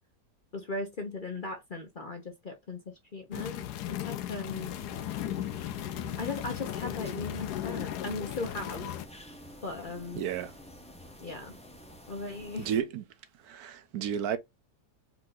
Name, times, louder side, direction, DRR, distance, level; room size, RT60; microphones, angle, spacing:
voice 1, 0.5-2.8 3.1-4.7 6.2-8.9 9.6-10.2 11.2-11.6 12.1-12.7, left 3 dB, 40° left, 0.7 m, -38 dB
sound 1, 3.3-9.1, left 12 dB, 80° left, 1.1 m, -36 dB
sound 2, 4.5-12.8, equal, 10° left, 0.3 m, -50 dB
voice 2, 10.2-10.5 12.6-13.0 13.4-14.4, right 9 dB, 70° right, 1.0 m, -32 dB
4.6 x 2.6 x 3.8 m
omnidirectional pair, 1.7 m